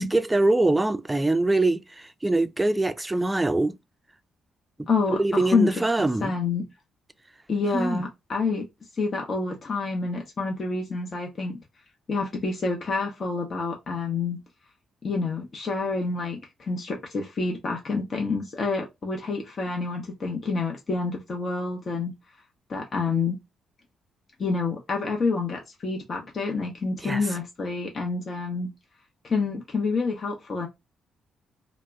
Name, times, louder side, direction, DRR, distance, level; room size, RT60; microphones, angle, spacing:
voice 1, 0.0-3.8 4.8-6.3 7.7-8.0 27.0-27.2, right 2 dB, 15° right, 0.3 m, -24 dB
voice 2, 4.9-6.6 7.5-8.6 9.0-11.6 12.1-14.4 15.0-22.1 22.7-23.4 24.4-28.7 29.2-30.7, left 4 dB, 50° left, 0.6 m, -28 dB
2.2 x 2.0 x 3.3 m
hypercardioid pair, 50°, 0 cm